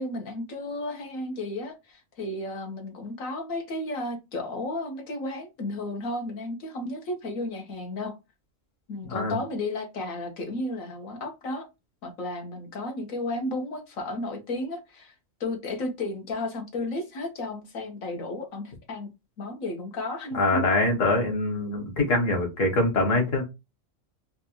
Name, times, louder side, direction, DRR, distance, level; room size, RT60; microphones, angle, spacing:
voice 1, 0.0-8.1 8.9-11.7 12.0-15.1 15.4-19.1 19.4-20.7, left 2 dB, 90° left, 1.5 m, -33 dB
voice 2, 20.3-23.4, left 2 dB, 70° left, 1.8 m, -24 dB
4.3 x 2.6 x 2.9 m
omnidirectional pair, 1.4 m